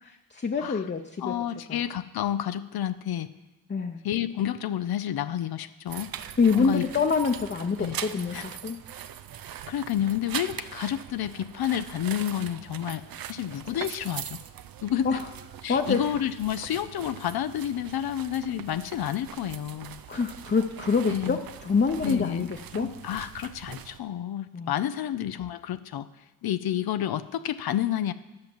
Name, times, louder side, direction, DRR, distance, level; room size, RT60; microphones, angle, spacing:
voice 1, 0.0-1.3 1.7-1.8 3.7-4.0 6.4-8.8 15.0-15.2 15.7-16.0 20.1-22.9 24.5-24.7, left 5 dB, 30° left, 3 dB, 0.7 m, -26 dB
voice 2, 1.2-3.3 4.0-6.1 6.5-6.8 7.8-8.0 8.3-8.5 9.7-14.4 14.8-15.2 15.6-20.0 21.1-21.4 22.0-22.5 22.7-26.1 26.4-28.1, left 11 dB, 85° left, 12 dB, 0.6 m, -30 dB
sound 1, 5.9-24.0, right 10 dB, 75° right, 0.6 m, -41 dB
10.5 x 5.9 x 7.2 m, 1.1 s
cardioid pair, 65°, 36 cm